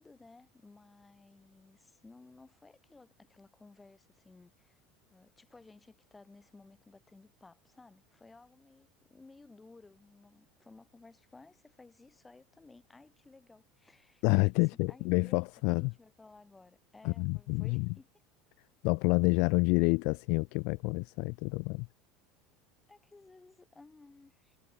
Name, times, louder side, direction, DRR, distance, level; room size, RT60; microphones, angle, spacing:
voice 1, 0.0-4.8 5.1-14.5 14.9-18.1 22.9-24.6, left 3 dB, 10° left, 5.6 m, -57 dB
voice 2, 14.2-15.9 17.0-17.9 18.8-21.9, left 32 dB, 55° left, 0.4 m, -28 dB
cardioid pair, 175°, 0 cm